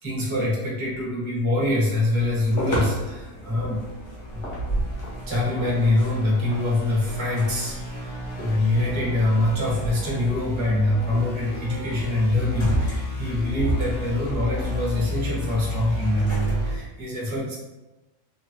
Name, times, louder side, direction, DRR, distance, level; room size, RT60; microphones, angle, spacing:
voice 1, 0.0-3.8 4.2-4.4 5.3-17.6, left 1 dB, 25° right, -5 dB, 0.7 m, -24 dB
sound 1, 2.2-16.9, right 1 dB, 70° left, 1.2 m, -33 dB
sound 2, 3.4-16.7, left 2 dB, 50° left, 0.7 m, -34 dB
2.9 x 2.2 x 3.0 m, 1.1 s
omnidirectional pair, 1.4 m